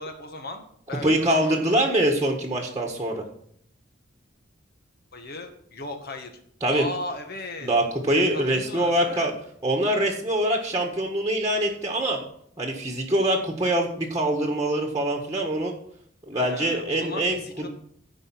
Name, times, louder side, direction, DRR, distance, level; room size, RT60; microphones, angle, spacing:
voice 1, 0.0-1.8 5.1-6.3 6.7-7.7 8.1-9.3 16.3-17.7, left 2 dB, 50° left, 5 dB, 2.0 m, -37 dB
voice 2, 1.0-3.2 6.6-6.8 7.6-9.3 9.6-12.2 12.6-15.7 16.3-17.4, right 1 dB, 15° right, 2 dB, 1.6 m, -24 dB
15.5 x 5.4 x 6.2 m, 0.66 s
head